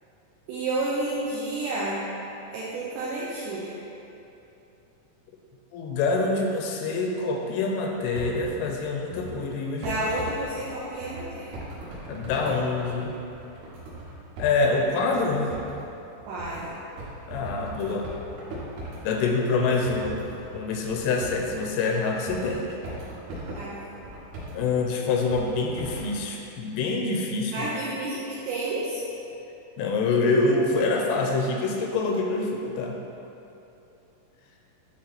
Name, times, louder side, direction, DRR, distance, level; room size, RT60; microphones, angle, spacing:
voice 1, 0.5-2.0 2.5-3.8 9.8-11.5 16.3-16.7 23.5-23.9 27.5-29.0, right 2 dB, 90° right, -7 dB, 2.5 m, -30 dB
voice 2, 5.7-9.9 12.1-13.2 14.4-15.5 17.3-18.1 19.0-20.2 20.5-22.8 24.5-27.7 29.8-33.0, left 3 dB, 85° left, 1 dB, 3.0 m, -26 dB
sound 1, 8.1-9.4 9.8-19.1 19.5-21.8 22.0-24.7 25.3-26.1, right 1 dB, 65° right, 2.9 m, -39 dB
9.7 x 3.2 x 4.2 m, 2.8 s
omnidirectional pair, 5.8 m